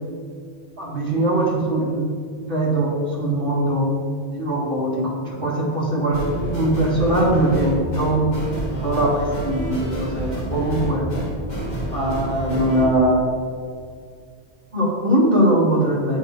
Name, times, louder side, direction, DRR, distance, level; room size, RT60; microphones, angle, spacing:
voice 1, 0.8-2.1 2.5-3.9 4.3-8.4 8.8-11.0 11.9-13.2 14.7-16.2, right 1 dB, 50° right, -5 dB, 1.9 m, -21 dB
sound 1, 6.1-12.8, right 1 dB, 40° left, 2.1 m, -28 dB
7.3 x 4.4 x 4.3 m, 2.2 s
omnidirectional pair, 1.1 m